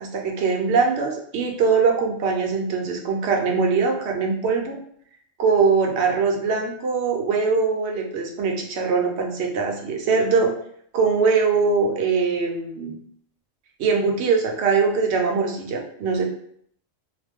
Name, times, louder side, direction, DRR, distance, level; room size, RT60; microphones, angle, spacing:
voice 1, 0.0-4.8 5.4-10.5 10.9-13.0 13.8-16.2, right 5 dB, 65° right, 2 dB, 0.8 m, -22 dB
2.4 x 2.1 x 3.4 m, 0.66 s
omnidirectional pair, 1.3 m